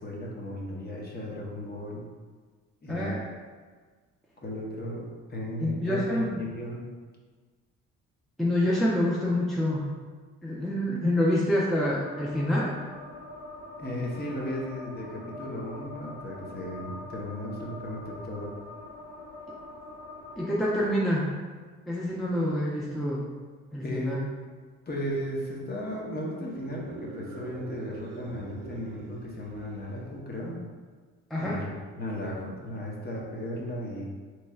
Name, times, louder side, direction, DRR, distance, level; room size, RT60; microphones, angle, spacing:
voice 1, 0.0-2.0 2.8-3.1 4.4-6.8 13.8-18.5 23.8-24.2 24.9-30.6 31.4-31.7 32.0-34.1, equal, 30° left, -3 dB, 1.0 m, -35 dB
voice 2, 2.9-3.2 5.6-6.4 8.4-9.9 10.4-12.7 20.4-21.3 21.9-23.2 23.7-24.2 31.3-31.6, left 1 dB, ahead, -5 dB, 0.6 m, -27 dB
sound 1, 12.0-20.9, left 2 dB, 85° left, 0.9 m, -44 dB
sound 2, 26.5-30.1, right 4 dB, 70° right, 0.5 m, -44 dB
4.1 x 3.1 x 2.4 m, 1.5 s
supercardioid pair, 65°, 34 cm